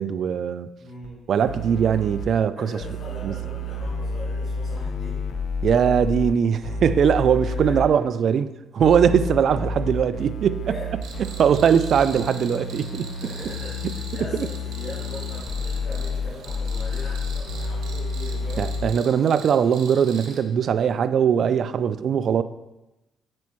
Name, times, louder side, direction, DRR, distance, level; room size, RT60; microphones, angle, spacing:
voice 1, 0.0-0.7 1.3-2.8 3.2-3.3 5.6-10.7 11.4-13.1 18.6-22.4, right 7 dB, 60° right, 0.3 m, -21 dB
voice 2, 0.8-1.2 2.6-5.2 7.5-7.7 10.6-11.0 13.2-18.7, left 1 dB, 60° left, 2.4 m, -40 dB
sound 1, 1.0-1.1 1.5-2.2 2.8-6.3 6.6-7.9 8.8-18.9, left 2 dB, 80° left, 0.7 m, -30 dB
Cricket, 11.0-20.4, right 5 dB, 80° right, 0.9 m, -42 dB
7.5 x 7.2 x 3.1 m
cardioid pair, 90°, 0 cm